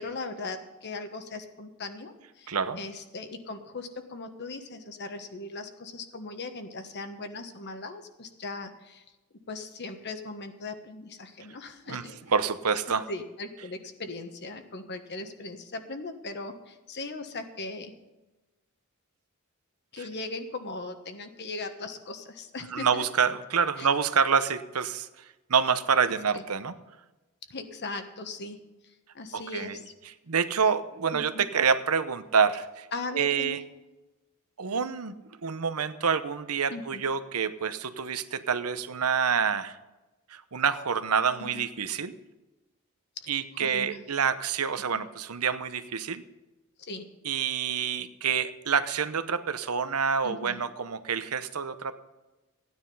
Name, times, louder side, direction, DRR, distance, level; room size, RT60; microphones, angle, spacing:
voice 1, 0.0-9.0 9.5-12.2 13.1-17.9 19.9-23.0 23.8-23.9 26.3-26.4 27.5-28.6 29.1-29.9 31.1-31.4 32.9-33.6 36.7-37.0 41.4-41.6 43.2-44.1 46.8-47.0 50.2-50.6, left 3 dB, 50° left, 7 dB, 1.3 m, -39 dB
voice 2, 2.5-2.8 11.9-12.0 12.3-13.0 20.0-20.1 22.7-25.1 25.5-26.7 29.3-29.8 30.3-32.9 33.1-33.6 34.6-35.2 35.4-39.8 40.3-42.1 43.3-46.2 47.2-52.0, right 6 dB, 80° right, 12 dB, 0.9 m, -27 dB
14.0 x 9.7 x 5.5 m, 1.1 s
head